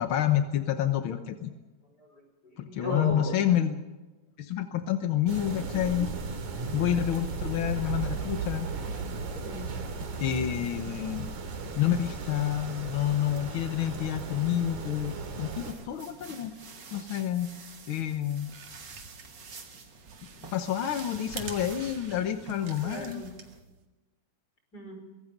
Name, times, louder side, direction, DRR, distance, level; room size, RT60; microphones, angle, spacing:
voice 1, 0.0-1.5 2.6-3.8 4.4-6.1 6.7-8.7 10.2-11.3 11.7-16.5 16.9-17.5 17.9-18.5 20.5-23.2, left 11 dB, 60° left, 7 dB, 1.4 m, -28 dB
voice 2, 2.0-3.4 9.4-9.7 11.4-11.7 15.6-16.0 22.8-23.3 24.7-25.0, equal, 30° left, 4 dB, 5.8 m, -38 dB
sound 1, 5.3-15.7, right 4 dB, 80° right, 3.9 m, -36 dB
sound 2, 15.4-23.6, right 4 dB, 40° right, 2.4 m, -49 dB
sound 3, 18.2-23.8, right 5 dB, 65° right, 3.2 m, -46 dB
24.0 x 22.0 x 5.3 m, 1.2 s
omnidirectional pair, 3.4 m